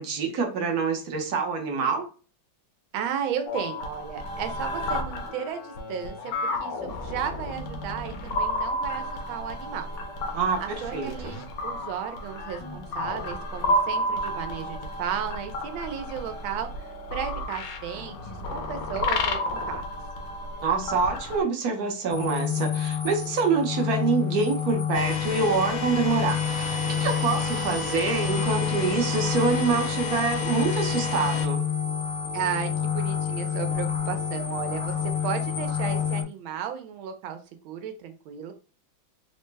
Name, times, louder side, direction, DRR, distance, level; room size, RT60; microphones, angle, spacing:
voice 1, 0.0-2.1 10.3-11.3 20.6-31.6, right 4 dB, 60° right, 3 dB, 1.1 m, -26 dB
voice 2, 2.9-9.9 10.6-18.2 18.5-19.9 32.3-37.4 37.6-38.5, right 8 dB, 85° right, 7 dB, 1.5 m, -34 dB
sound 1, 3.5-21.4, left 1 dB, 70° left, 1.3 m, -32 dB
sound 2, 22.1-36.2, left 8 dB, 55° left, 0.8 m, -28 dB
sound 3, 24.9-31.5, left 4 dB, 90° left, 0.6 m, -33 dB
3.9 x 2.1 x 3.2 m, 0.35 s
omnidirectional pair, 2.2 m